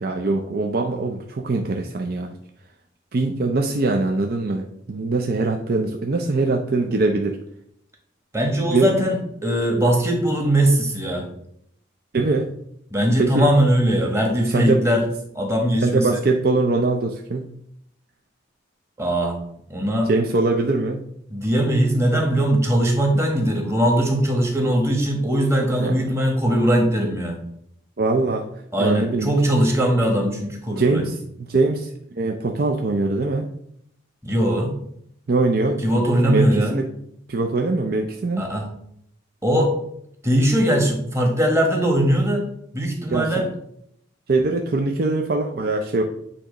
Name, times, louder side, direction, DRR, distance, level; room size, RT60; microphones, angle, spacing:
voice 1, 0.0-2.4 3.1-7.4 8.7-9.0 12.1-12.5 13.2-13.5 14.4-14.8 15.8-17.5 20.0-21.0 25.8-26.1 28.0-28.5 28.8-29.3 30.7-33.5 35.3-35.9 36.3-36.9 37.3-38.5 43.1-43.5 44.3-46.0, right 3 dB, 50° right, 2 dB, 0.5 m, -22 dB
voice 2, 8.3-9.2 9.4-11.3 12.9-15.0 15.3-16.2 19.0-19.4 19.7-20.1 21.3-27.4 28.7-31.1 34.2-34.7 35.8-36.8 38.4-38.7 39.4-39.7 40.2-42.5 42.7-43.5, right 1 dB, 15° right, 1 dB, 1.3 m, -20 dB
8.7 x 2.9 x 5.0 m, 0.72 s
head